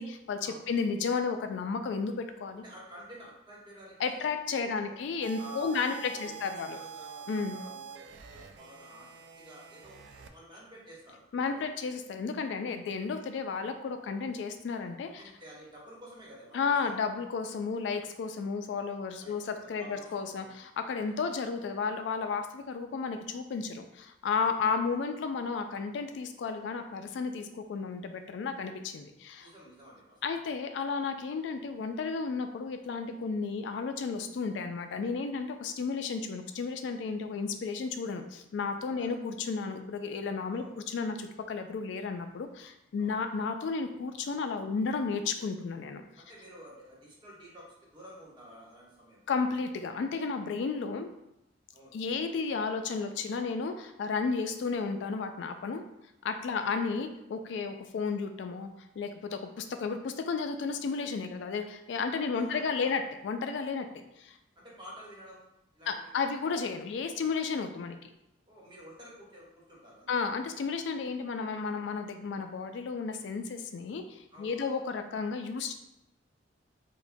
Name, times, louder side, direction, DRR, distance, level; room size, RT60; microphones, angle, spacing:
voice 1, 0.0-2.6 4.0-6.8 7.3-7.6 11.3-15.2 16.5-29.5 30.2-46.0 49.3-51.1 51.9-55.8 56.2-58.7 59.0-64.4 65.9-68.1 70.1-75.7, left 5 dB, 75° left, 7 dB, 0.3 m, -33 dB
voice 2, 2.6-4.3 4.6-5.0 5.4-9.1 9.4-11.7 15.0-16.9 19.2-19.4 19.6-20.6 21.2-21.3 24.4-24.5 29.4-30.2 38.9-39.1 40.5-40.7 43.0-43.2 46.1-49.3 51.7-52.0 54.4-54.5 56.4-56.6 62.3-63.0 64.6-65.5 65.7-66.1 68.5-70.1 74.3-74.7, equal, 25° right, -5 dB, 1.0 m, -50 dB
sound 1, 5.2-10.3, right 7 dB, 70° right, 0.3 m, -46 dB
4.7 x 2.1 x 2.6 m, 0.85 s
head